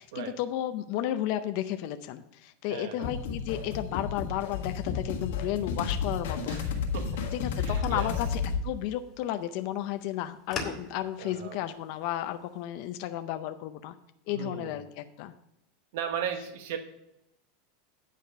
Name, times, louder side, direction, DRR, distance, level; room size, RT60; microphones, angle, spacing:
voice 1, 0.0-6.8 7.3-13.9 14.3-15.3, left 12 dB, 50° left, 8 dB, 0.5 m, -33 dB
voice 2, 2.7-3.1 6.5-7.3 7.6-8.1 11.2-11.6 14.3-14.7 15.9-16.8, right 8 dB, 65° right, 6 dB, 1.0 m, -37 dB
sound 1, 3.0-8.6, left 6 dB, 90° left, 1.7 m, -32 dB
sound 2, 5.1-12.7, left 4 dB, 25° left, 1.7 m, -46 dB
9.3 x 5.0 x 6.6 m, 0.83 s
supercardioid pair, 160°, 0 cm